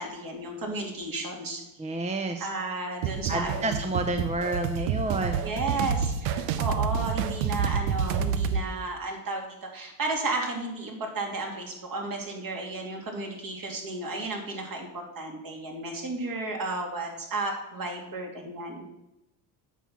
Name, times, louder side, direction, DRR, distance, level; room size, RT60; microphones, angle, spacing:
voice 1, 0.0-1.6 2.4-3.7 5.4-18.9, right 2 dB, 45° right, 1 dB, 2.7 m, -33 dB
voice 2, 1.8-2.5 3.3-5.5, right 2 dB, 15° right, 6 dB, 0.6 m, -29 dB
sound 1, 3.0-8.6, right 7 dB, 85° right, 0.8 m, -28 dB
8.2 x 5.6 x 5.9 m, 0.87 s
supercardioid pair, 95°, 45 cm